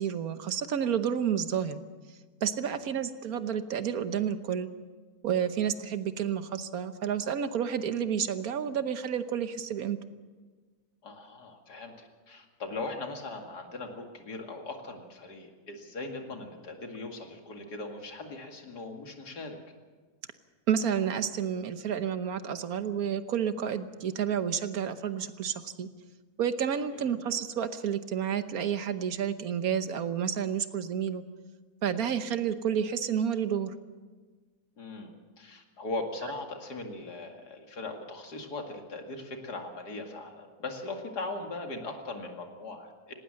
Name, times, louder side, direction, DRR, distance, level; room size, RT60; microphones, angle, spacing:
voice 1, 0.0-1.8 2.4-4.7 5.2-10.0 20.7-25.9 26.4-31.2 31.8-33.7, right 8 dB, 70° right, 11 dB, 1.4 m, -30 dB
voice 2, 11.0-19.6 26.9-27.0 34.8-43.1, left 2 dB, 85° left, 3 dB, 2.8 m, -39 dB
18.5 x 18.5 x 7.6 m, 1.4 s
omnidirectional pair, 1.7 m